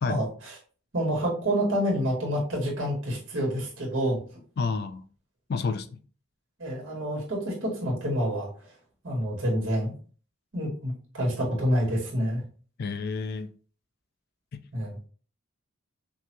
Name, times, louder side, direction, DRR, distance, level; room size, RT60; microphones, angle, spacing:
voice 1, 0.0-0.5 0.9-4.2 6.6-8.5 9.0-9.9 10.5-12.4 14.7-15.0, equal, 60° right, 2.1 m, -28 dB
voice 2, 4.6-5.1 5.5-6.0 12.8-13.5 14.5-14.6, left 4 dB, 45° left, 0.3 m, -30 dB
5.8 x 2.3 x 3.0 m
head